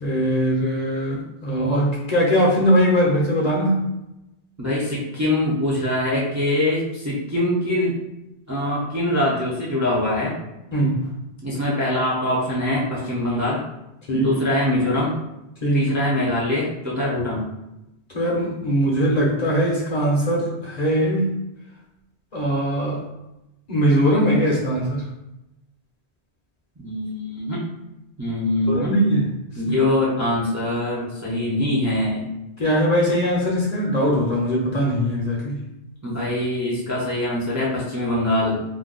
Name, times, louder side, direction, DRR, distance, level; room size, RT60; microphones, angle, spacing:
voice 1, 0.0-3.9 10.7-11.1 14.1-14.3 15.6-15.9 18.1-21.3 22.3-23.0 23.7-25.0 28.7-29.3 32.6-35.6, equal, 45° left, -4 dB, 0.7 m, -21 dB
voice 2, 4.6-8.0 8.5-10.4 11.4-13.6 14.1-15.1 15.7-17.4 26.8-27.6 28.2-28.9 29.6-32.3 36.0-38.6, left 1 dB, 20° right, -6 dB, 0.5 m, -23 dB
2.5 x 2.2 x 3.7 m, 0.92 s
omnidirectional pair, 1.1 m